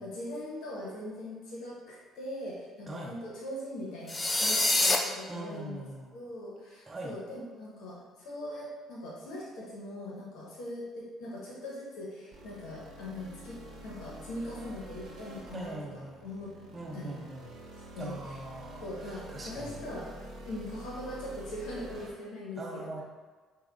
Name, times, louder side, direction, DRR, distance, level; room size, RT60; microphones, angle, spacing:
voice 1, 0.0-5.8 6.1-16.5 16.9-17.2 17.9-18.4 18.8-20.1 20.4-22.9, left 1 dB, 70° left, -4 dB, 1.2 m, -41 dB
voice 2, 2.9-3.2 5.3-6.1 6.9-7.2 15.5-16.3 16.7-17.6 18.0-19.8 22.6-23.0, right 2 dB, 25° right, -3 dB, 0.8 m, -42 dB
sound 1, 4.1-5.0, left 2 dB, 25° left, 0.5 m, -25 dB
sound 2, 12.3-22.1, right 1 dB, 60° right, 0.9 m, -48 dB
5.7 x 2.5 x 2.6 m, 1.4 s
hypercardioid pair, 55°, 0 cm